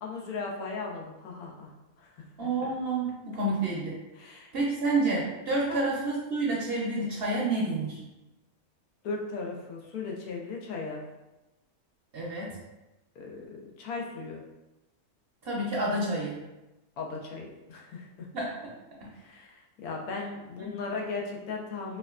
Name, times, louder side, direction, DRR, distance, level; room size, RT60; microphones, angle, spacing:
voice 1, 0.0-1.7 2.0-2.1 2.6-2.7 4.1-4.5 5.7-5.8 9.0-11.0 13.2-13.4 13.8-14.4 17.0-18.3 19.1-22.0, left 4 dB, 90° left, -1 dB, 1.2 m, -37 dB
voice 2, 2.4-3.9 4.5-8.0 12.1-12.6 15.4-16.4 18.3-18.5, right 2 dB, 60° right, -4 dB, 0.7 m, -29 dB
4.3 x 2.4 x 2.3 m, 1.0 s
omnidirectional pair, 1.5 m